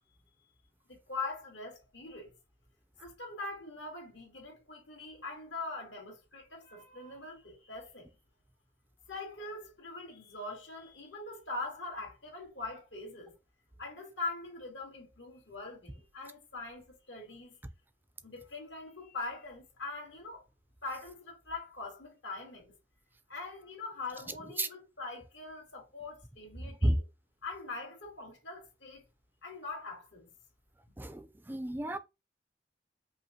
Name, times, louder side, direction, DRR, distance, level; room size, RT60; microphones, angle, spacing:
voice 1, 0.9-2.4 3.0-8.1 9.1-13.3 13.8-17.6 18.2-20.4 20.8-22.7 23.3-27.0 27.4-29.0 29.4-30.3, left 3 dB, 80° left, 2.3 m, -42 dB
voice 2, 31.0-32.0, right 1 dB, 10° right, 0.4 m, -31 dB
5.4 x 2.5 x 2.9 m
head